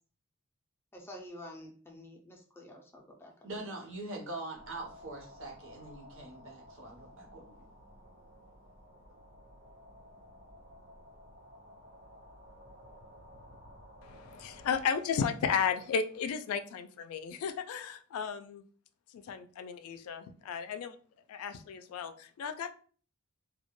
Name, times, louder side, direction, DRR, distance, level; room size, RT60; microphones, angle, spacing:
voice 1, 0.9-3.7, left 1 dB, 10° left, 0 dB, 0.4 m, -49 dB
voice 2, 3.4-7.6 8.9-9.1, right 2 dB, 65° right, 1 dB, 0.8 m, -43 dB
sound 1, 4.5-14.8, equal, 90° right, 1.1 m, -54 dB
voice 3, 14.0-18.6 19.1-21.0 21.3-22.7, left 6 dB, 85° left, 13 dB, 0.3 m, -34 dB
2.2 x 2.1 x 2.9 m, 0.43 s
head